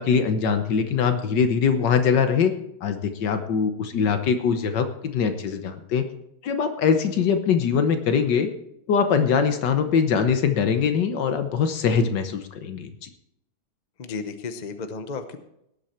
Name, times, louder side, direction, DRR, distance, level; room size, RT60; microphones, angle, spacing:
voice 1, 0.0-2.5 2.8-6.0 6.4-8.5 8.9-13.1, left 6 dB, 70° left, 8 dB, 1.6 m, -22 dB
voice 2, 14.0-15.4, left 4 dB, 40° left, 8 dB, 0.7 m, -33 dB
18.0 x 8.1 x 4.4 m, 0.78 s
omnidirectional pair, 2.0 m